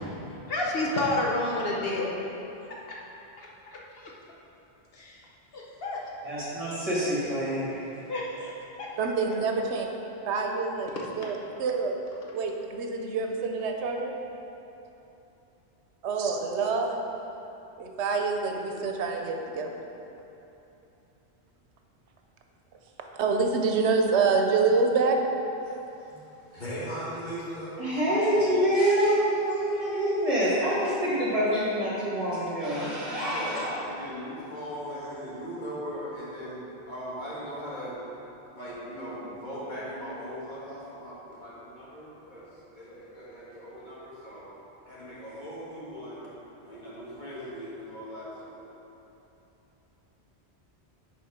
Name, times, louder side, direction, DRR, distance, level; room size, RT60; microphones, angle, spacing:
voice 1, 0.5-2.2 3.4-3.5 4.9-5.2 5.5-6.0 8.1-8.9, left 2 dB, 65° left, -3 dB, 1.1 m, -29 dB
voice 2, 6.2-7.8 27.8-33.6, equal, 35° right, -8 dB, 1.7 m, -26 dB
voice 3, 9.0-9.9 10.3-10.9 11.2-12.0 12.3-14.1 16.0-17.0 17.8-19.7 23.2-25.2, right 4 dB, 90° right, 3 dB, 1.0 m, -26 dB
voice 4, 25.7-27.8 33.3-38.0 38.5-44.5 44.9-46.3 46.6-48.6, equal, 45° left, -8 dB, 1.7 m, -39 dB
6.8 x 4.4 x 5.0 m, 3.0 s
omnidirectional pair, 1.1 m